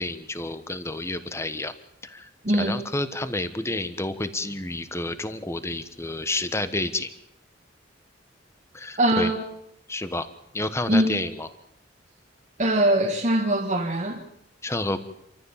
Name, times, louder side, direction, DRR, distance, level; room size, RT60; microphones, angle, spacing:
voice 1, 0.0-1.7 2.0-2.3 2.6-7.1 8.7-9.3 9.9-10.3 10.5-11.5 14.6-15.0, left 2 dB, 15° left, 11 dB, 1.2 m, -30 dB
voice 2, 2.4-2.8 9.0-9.4 10.9-11.2 12.6-14.2, right 1 dB, 40° right, 1 dB, 1.6 m, -22 dB
27.0 x 14.0 x 7.3 m, 0.81 s
head